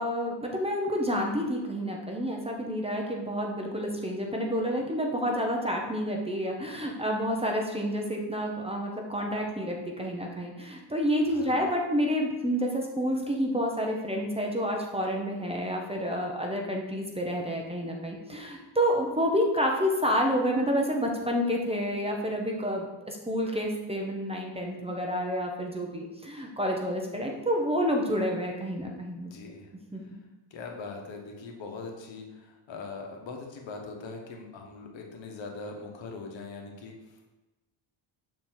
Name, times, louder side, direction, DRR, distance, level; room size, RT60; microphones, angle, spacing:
voice 1, 0.0-29.3 29.9-30.0, equal, 15° right, 0 dB, 0.8 m, -29 dB
voice 2, 11.3-11.6 29.2-29.7 30.0-30.2 30.5-37.3, left 4 dB, 70° left, 1 dB, 1.2 m, -41 dB
6.6 x 4.3 x 4.4 m, 1.1 s
cardioid pair, 135°, 47 cm